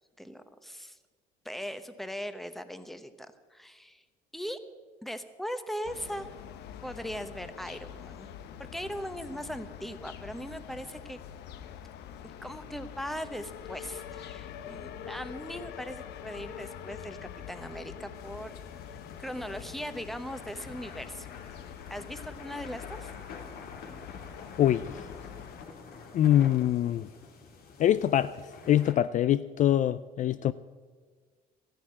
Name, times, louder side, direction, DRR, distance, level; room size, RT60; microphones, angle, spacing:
voice 1, 0.2-1.0 1.4-4.0 4.3-4.6 5.0-6.3 6.8-8.3 8.6-11.2 12.4-17.2 17.5-18.5 19.2-21.3 21.9-23.1, equal, ahead, 1.0 m, -39 dB
sound 1, 5.8-25.6, left 9 dB, 80° left, 0.9 m, -45 dB
sound 2, 18.1-28.9, left 4 dB, 65° left, 2.5 m, -48 dB
voice 2, 24.6-25.0 26.1-27.1 27.8-28.4 28.7-30.5, left 11 dB, 50° left, 0.4 m, -24 dB
14.0 x 10.0 x 8.6 m
cardioid pair, 110°, 17 cm